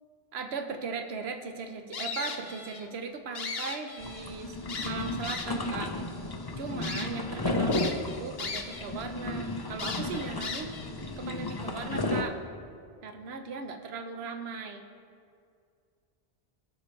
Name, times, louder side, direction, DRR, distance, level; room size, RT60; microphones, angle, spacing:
voice 1, 0.3-4.6 4.8-6.0 6.6-10.7 11.2-12.4 13.0-14.9, right 4 dB, 80° right, 6 dB, 1.0 m, -38 dB
sound 1, 1.9-2.9 3.2-4.3 4.7-5.7 6.3-6.4 6.8-7.1 7.7-8.9 9.2-9.3 9.8-10.9, left 4 dB, 70° left, 1.1 m, -37 dB
sound 2, 4.0-12.2, left 2 dB, 30° left, 0.5 m, -33 dB
19.5 x 6.7 x 3.2 m, 2.3 s
omnidirectional pair, 1.1 m